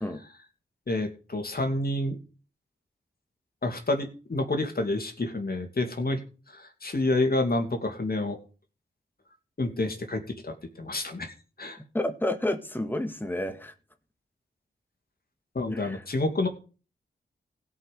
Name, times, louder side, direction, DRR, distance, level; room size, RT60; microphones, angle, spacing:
voice 1, 0.9-2.2 3.6-6.2 6.5-8.4 9.6-11.8 15.5-16.5, left 2 dB, 45° left, 5 dB, 2.6 m, -29 dB
voice 2, 11.9-13.7 15.7-16.0, left 1 dB, 10° left, 7 dB, 1.8 m, -30 dB
16.0 x 5.6 x 6.8 m, 0.36 s
cardioid pair, 55°, 21 cm